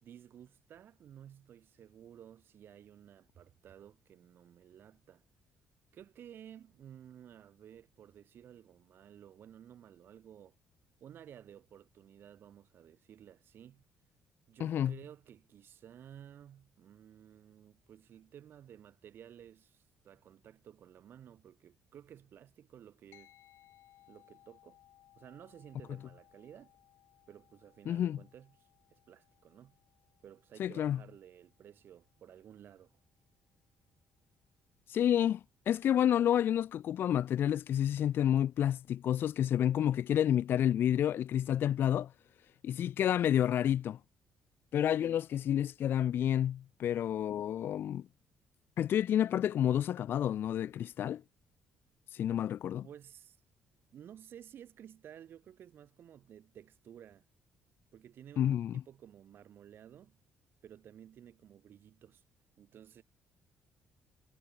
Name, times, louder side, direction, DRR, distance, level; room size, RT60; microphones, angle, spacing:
voice 1, 0.0-5.2 5.9-10.6 11.0-13.8 14.5-23.3 24.1-24.8 25.2-26.7 27.3-29.8 30.2-32.9 45.0-45.2 52.8-53.4 53.9-57.3 57.9-60.2 60.6-62.2 62.6-63.0, right 10 dB, 65° right, 4.5 m, -54 dB
voice 2, 14.6-14.9 27.9-28.2 30.6-31.0 34.9-42.1 42.6-44.0 44.7-48.0 48.8-51.2 52.1-52.9 58.4-58.7, left 10 dB, 65° left, 0.5 m, -29 dB
sound 1, 23.1-32.8, left 14 dB, 85° left, 4.9 m, -66 dB
cardioid pair, 90°, 4 cm